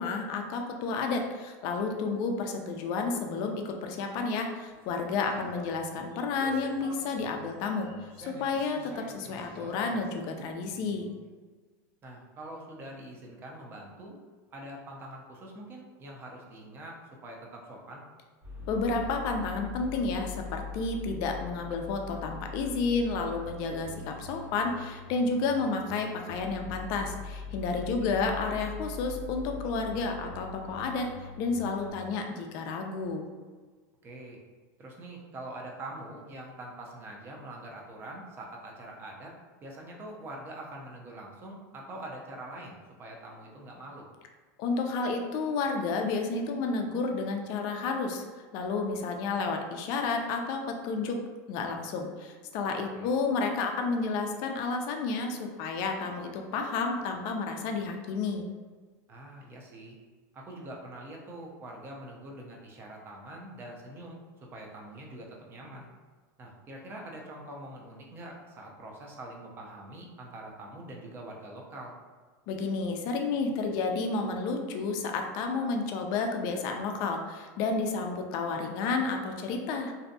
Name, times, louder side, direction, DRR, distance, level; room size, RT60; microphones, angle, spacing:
voice 1, 0.0-7.9 8.2-11.1 18.7-31.1 31.4-33.3 44.6-48.3 48.5-51.2 51.5-58.5 72.5-79.9, left 4 dB, 50° left, 4 dB, 0.3 m, -31 dB
sound 1, 4.6-11.2, equal, 65° right, 1.4 m, -49 dB
voice 2, 12.0-14.2 14.5-17.0 17.2-18.0 27.7-28.2 34.0-34.4 34.8-39.3 39.6-44.1 53.0-53.1 59.1-60.0 60.3-65.9 66.4-71.9, right 1 dB, 25° right, -1 dB, 0.5 m, -44 dB
sound 2, 18.4-31.9, left 4 dB, 50° right, 1.1 m, -42 dB
2.6 x 2.1 x 2.6 m, 1.4 s
supercardioid pair, 150°, 9 cm